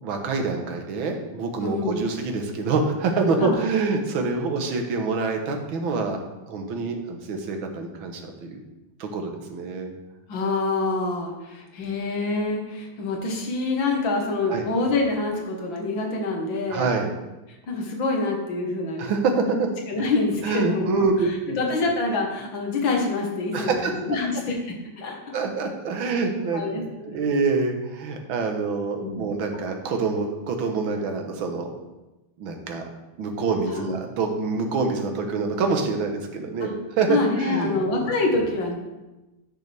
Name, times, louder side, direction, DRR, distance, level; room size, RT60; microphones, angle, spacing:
voice 1, 0.0-6.2 6.5-8.6 9.0-9.9 14.5-14.7 16.7-17.1 19.0-19.3 19.6-19.7 20.4-21.6 23.5-23.9 25.3-31.7 32.4-32.8 33.2-38.1, right 4 dB, 85° right, 4 dB, 1.9 m, -26 dB
voice 2, 1.6-2.1 3.4-3.6 10.3-16.9 17.7-19.1 19.9-25.4 26.5-26.8 27.1-27.3 29.0-29.3 29.5-29.6 33.7-33.9 36.6-36.7 37.1-38.7, left 3 dB, 70° left, 1 dB, 2.2 m, -26 dB
12.0 x 6.6 x 3.4 m, 1.0 s
omnidirectional pair, 2.2 m